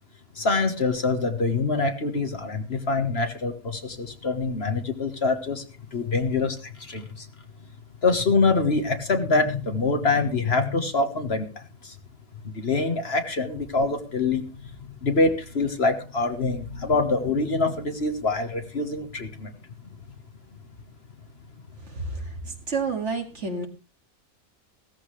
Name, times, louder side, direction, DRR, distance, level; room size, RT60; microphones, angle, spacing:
voice 1, 0.3-5.6 5.9-7.3 8.0-11.9 12.4-14.4 15.0-19.5, left 3 dB, 50° left, 7 dB, 1.6 m, -25 dB
voice 2, 21.9-22.3 22.7-23.7, right 4 dB, 55° right, 4 dB, 2.4 m, -29 dB
16.0 x 14.0 x 3.3 m, 0.32 s
omnidirectional pair, 1.4 m